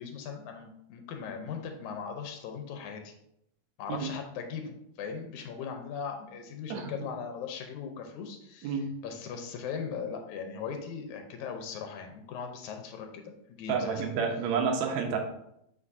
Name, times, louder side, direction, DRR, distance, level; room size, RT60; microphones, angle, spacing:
voice 1, 0.0-3.1 3.8-8.8 9.0-14.0, left 6 dB, 90° left, 4 dB, 2.2 m, -39 dB
voice 2, 13.7-15.2, right 6 dB, 75° right, 2 dB, 2.1 m, -29 dB
8.4 x 5.1 x 2.6 m, 0.78 s
omnidirectional pair, 3.3 m